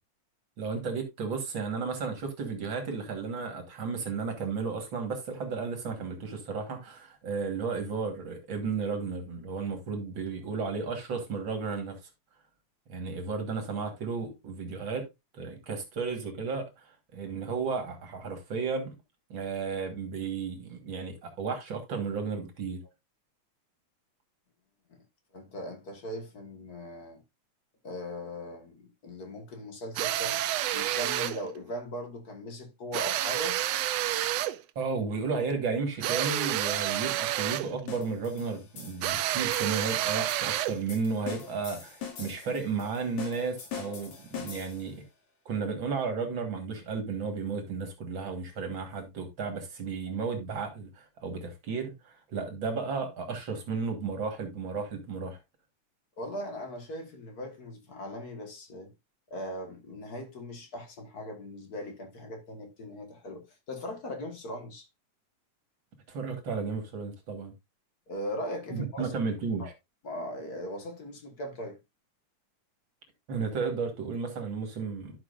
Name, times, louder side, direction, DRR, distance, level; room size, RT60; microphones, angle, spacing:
voice 1, 0.6-12.0 12.9-15.1 15.3-18.9 19.3-22.8 34.8-45.0 45.5-55.4 66.1-67.5 68.7-69.7 73.3-75.1, right 5 dB, 45° right, 2.0 m, -33 dB
voice 2, 25.3-27.2 27.8-30.4 30.7-33.6 56.2-58.9 59.3-64.9 68.1-69.1 69.6-69.7 70.0-71.8, equal, 40° left, 1.5 m, -39 dB
sound 1, 30.0-31.4 32.9-34.6 36.0-37.7 39.0-40.8, right 13 dB, 90° right, 1.4 m, -29 dB
sound 2, 37.9-45.0, left 7 dB, 90° left, 3.8 m, -43 dB
12.0 x 5.9 x 2.5 m
omnidirectional pair, 3.5 m